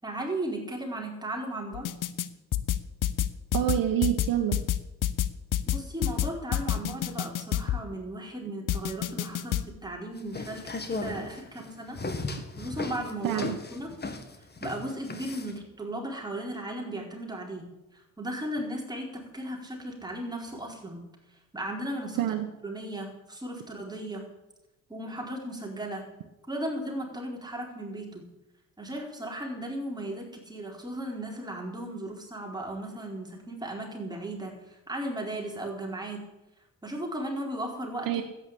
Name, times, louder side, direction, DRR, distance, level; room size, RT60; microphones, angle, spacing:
voice 1, 0.0-1.9 5.7-9.6 9.8-10.6 10.9-12.0 12.2-12.3 12.6-13.4 13.7-13.9 14.6-17.7 17.9-21.0 21.5-22.2 22.6-24.3 24.9-26.0 26.5-28.2 28.8-36.2 36.8-38.2, right 1 dB, 10° right, -1 dB, 4.7 m, -36 dB
sound 1, 1.7-2.3 2.5-7.8 8.7-9.6, left 11 dB, 70° left, 0.9 m, -28 dB
voice 2, 3.5-4.6 13.2-13.6 22.2-22.5 38.1-38.2, right 12 dB, 85° right, 3 dB, 1.3 m, -26 dB
sound 2, 10.2-15.6, left 3 dB, 30° left, 2.0 m, -36 dB
13.0 x 9.8 x 8.5 m, 0.97 s
cardioid pair, 90°, 33 cm